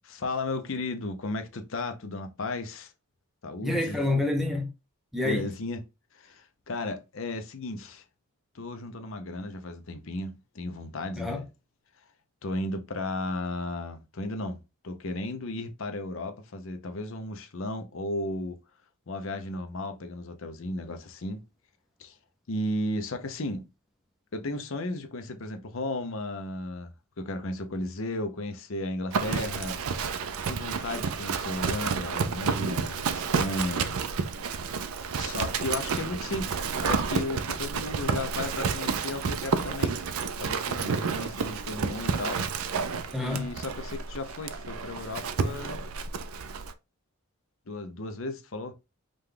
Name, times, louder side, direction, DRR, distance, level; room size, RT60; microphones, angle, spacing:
voice 1, 0.0-2.9 3.4-4.0 5.2-5.8 6.1-8.0 8.5-11.5 12.4-14.6 14.8-18.6 19.1-21.4 22.0-22.2 22.5-23.6 24.3-26.9 27.2-29.8 30.5-34.0 35.2-40.0 40.4-42.4 43.2-45.8 47.7-48.7, left 2 dB, 60° left, 0.6 m, -34 dB
voice 2, 3.6-4.7 5.1-5.5 11.2-11.4 43.1-43.5, left 2 dB, ahead, 0.5 m, -28 dB
Livestock farm animals working animals, 29.1-46.7, right 5 dB, 70° right, 0.5 m, -30 dB
5.0 x 2.3 x 3.7 m
head